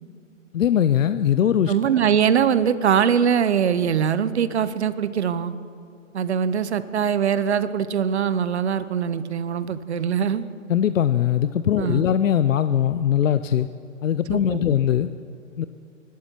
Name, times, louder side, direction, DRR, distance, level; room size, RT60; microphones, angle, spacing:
voice 1, 0.5-1.7 10.7-13.7 14.0-15.1 15.6-15.7, left 10 dB, 70° left, 12 dB, 0.6 m, -21 dB
voice 2, 1.7-5.5 6.1-10.5 11.8-12.0 14.3-14.7, right 8 dB, 55° right, 14 dB, 0.8 m, -22 dB
23.5 x 12.0 x 4.6 m, 2.6 s
hypercardioid pair, 165°, 40 cm